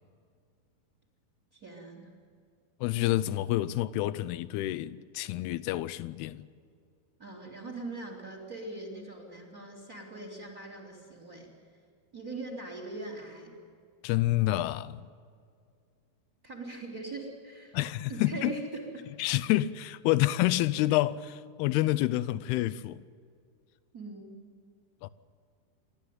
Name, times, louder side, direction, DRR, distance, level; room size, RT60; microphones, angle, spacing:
voice 1, 1.5-2.1 7.2-11.5 12.1-13.5 16.4-17.8 18.1-19.1 23.9-24.4, right 2 dB, 25° right, 3.1 m, -41 dB
voice 2, 2.8-6.5 14.0-15.1 17.7-18.6 19.2-23.0 25.0-25.1, left 15 dB, 85° left, 2.7 m, -28 dB
28.5 x 12.5 x 9.2 m
omnidirectional pair, 4.5 m